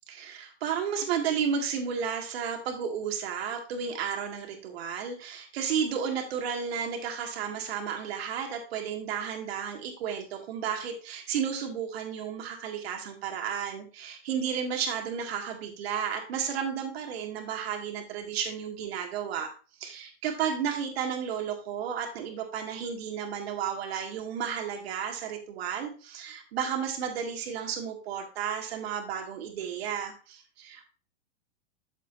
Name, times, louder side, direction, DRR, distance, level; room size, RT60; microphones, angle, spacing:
voice 1, 0.1-19.5 19.8-30.8, right 7 dB, 60° right, 2 dB, 2.3 m, -33 dB
13.5 x 5.1 x 2.7 m, 0.36 s
hypercardioid pair, 155°, 35 cm